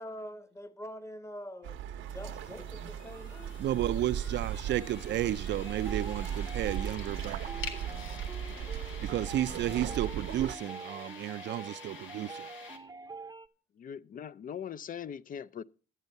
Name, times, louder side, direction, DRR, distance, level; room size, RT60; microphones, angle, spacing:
voice 1, 0.0-1.8 2.1-3.5, equal, 15° left, 1.0 m, -44 dB
sound 1, 1.6-10.6, right 10 dB, 85° right, 0.9 m, -37 dB
sound 2, 2.0-12.8, left 5 dB, 80° left, 1.6 m, -48 dB
voice 2, 3.6-7.4 9.0-12.5, right 12 dB, 65° right, 0.5 m, -32 dB
sound 3, 4.7-13.5, right 3 dB, 20° right, 0.7 m, -46 dB
voice 3, 13.8-15.6, left 8 dB, 45° left, 0.4 m, -41 dB
11.0 x 8.2 x 5.3 m
cardioid pair, 90°, 20 cm